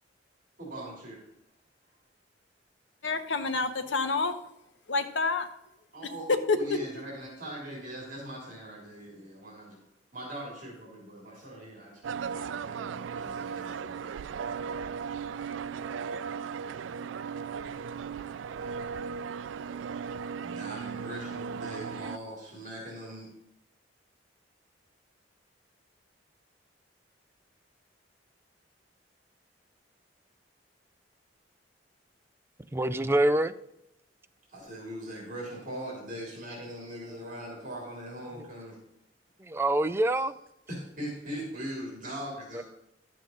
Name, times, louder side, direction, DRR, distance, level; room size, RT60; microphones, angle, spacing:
voice 1, 0.6-1.2 5.9-9.8 10.1-14.1 20.4-23.3 34.5-38.8 40.7-42.6, right 1 dB, 45° right, -3 dB, 3.1 m, -41 dB
voice 2, 3.0-4.4 4.9-5.5 6.5-6.8, left 3 dB, 85° left, 8 dB, 1.0 m, -28 dB
sound 1, 12.0-22.2, right 6 dB, 90° right, 0.3 m, -36 dB
voice 3, 32.7-33.5 39.4-40.4 42.5-42.6, right 1 dB, 15° right, 11 dB, 0.4 m, -25 dB
11.5 x 7.5 x 3.8 m, 0.83 s
head